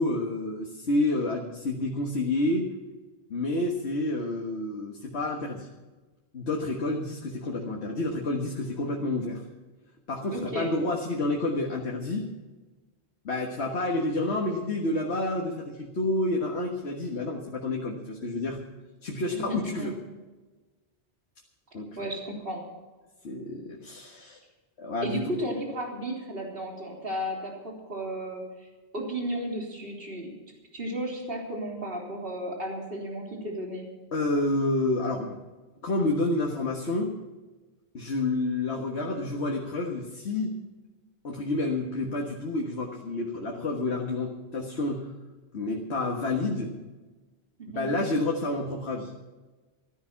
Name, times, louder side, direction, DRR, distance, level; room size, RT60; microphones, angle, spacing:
voice 1, 0.0-2.7 3.3-5.7 6.3-9.4 10.1-12.3 13.2-18.6 19.0-20.0 21.7-21.9 23.2-24.4 24.8-25.3 34.1-35.4 35.8-37.2 37.9-40.6 41.2-45.1 45.5-46.7 47.8-49.1, left 2 dB, 75° left, 0 dB, 1.9 m, -29 dB
voice 2, 10.3-10.7 19.3-19.9 22.0-22.6 25.0-28.7 28.9-30.3 30.7-33.9 47.6-47.9, right 1 dB, 60° right, 0 dB, 3.7 m, -34 dB
14.5 x 13.0 x 5.8 m, 1.2 s
omnidirectional pair, 1.1 m